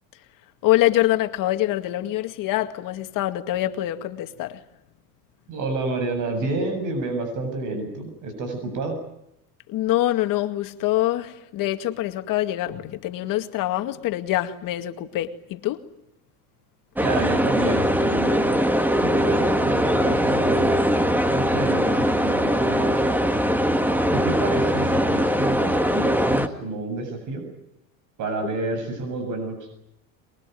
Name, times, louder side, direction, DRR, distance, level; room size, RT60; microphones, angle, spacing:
voice 1, 0.6-4.6 9.7-15.8, left 15 dB, 55° left, 7 dB, 2.2 m, -25 dB
voice 2, 5.5-9.0 17.0-18.5 19.0-20.8 21.3-23.1 24.1-27.4 28.2-29.6, right 2 dB, 50° right, 6 dB, 7.7 m, -29 dB
sound 1, 17.0-26.5, equal, 5° right, 1.7 m, -21 dB
23.5 x 23.0 x 9.4 m, 0.81 s
cardioid pair, 135°, 39 cm